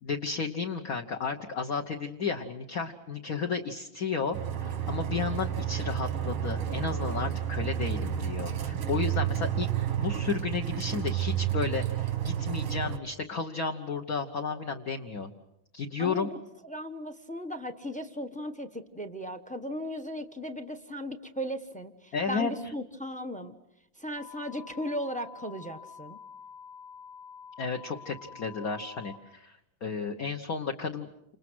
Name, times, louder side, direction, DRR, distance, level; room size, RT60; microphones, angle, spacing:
voice 1, 0.0-4.4 4.6-9.7 10.0-15.3 15.7-16.3 22.1-22.5 27.6-31.1, left 5 dB, 50° left, 2 dB, 1.5 m, -33 dB
sound 1, 4.3-13.0, right 10 dB, 90° right, 2.5 m, -31 dB
voice 2, 16.0-16.4 16.6-23.5 24.0-26.2, equal, 5° left, 9 dB, 0.8 m, -37 dB
sound 2, 24.2-29.2, left 6 dB, 80° left, 3.9 m, -48 dB
30.0 x 27.5 x 6.3 m, 0.81 s
omnidirectional pair, 2.3 m